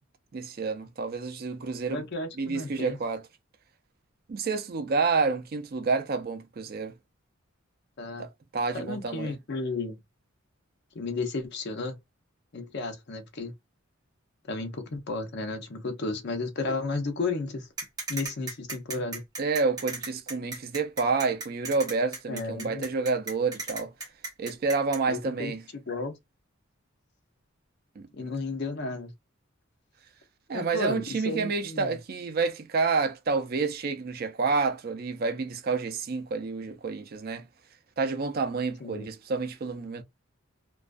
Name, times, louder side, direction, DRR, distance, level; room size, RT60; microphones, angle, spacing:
voice 1, 0.3-2.0 2.4-3.2 4.3-6.9 8.2-9.4 19.4-23.9 24.4-25.6 28.0-28.1 30.5-37.5 38.0-40.0, right 4 dB, 50° right, 0.4 m, -29 dB
voice 2, 1.9-3.0 8.0-8.3 8.7-10.0 10.9-11.9 12.5-13.5 14.5-17.7 18.1-19.2 22.3-22.9 25.1-26.2 28.2-29.1 30.5-32.0 38.8-39.1, left 3 dB, 55° left, 0.6 m, -33 dB
sound 1, 17.8-25.0, right 3 dB, 20° right, 1.0 m, -36 dB
2.3 x 2.2 x 2.4 m
head